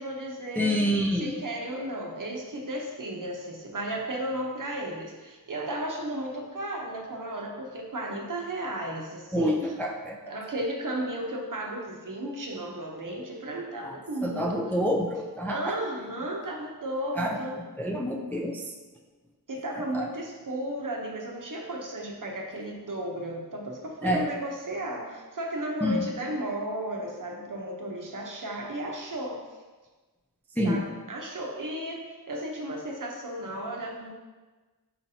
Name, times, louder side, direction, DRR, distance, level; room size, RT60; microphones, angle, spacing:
voice 1, 0.0-0.7 1.2-9.7 10.3-14.6 15.4-17.6 19.5-29.4 30.6-34.1, right 1 dB, 55° right, -1 dB, 0.8 m, -34 dB
voice 2, 0.6-1.4 9.3-10.2 13.8-14.0 14.2-15.7 17.2-17.4 17.8-18.6 19.9-20.1 24.0-24.3 25.8-26.0 30.6-30.8, equal, 5° left, 1 dB, 0.3 m, -27 dB
4.4 x 4.1 x 2.7 m, 1.3 s
wide cardioid pair, 65°, 39 cm